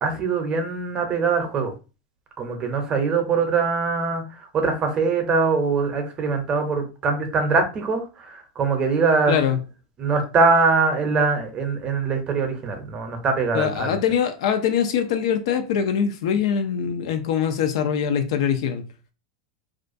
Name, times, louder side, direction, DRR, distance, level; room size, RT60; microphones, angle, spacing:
voice 1, 0.0-1.7 2.4-9.4 10.0-14.0, right 4 dB, 30° right, 0.6 m, -22 dB
voice 2, 9.3-9.6 13.5-18.8, left 8 dB, 75° left, 0.4 m, -23 dB
2.4 x 2.2 x 2.5 m
supercardioid pair, 130°, 3 cm